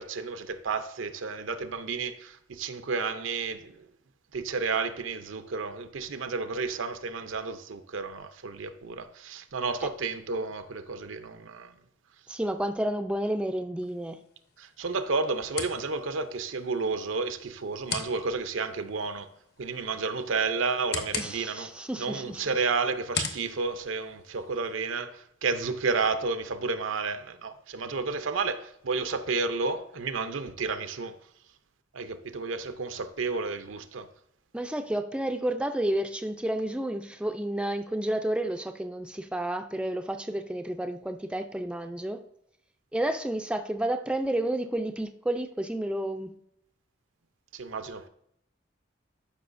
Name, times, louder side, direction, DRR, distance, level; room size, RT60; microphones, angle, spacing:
voice 1, 0.0-3.9 4.3-11.7 14.6-19.3 19.6-21.7 22.0-31.2 31.9-34.1 47.5-48.1, right 4 dB, 80° right, 0.6 m, -31 dB
voice 2, 12.3-14.2 21.2-22.4 34.5-42.2 42.9-46.3, right 1 dB, 5° right, 0.4 m, -31 dB
sound 1, 13.8-24.7, left 6 dB, 55° left, 1.0 m, -41 dB
12.0 x 5.5 x 2.6 m
head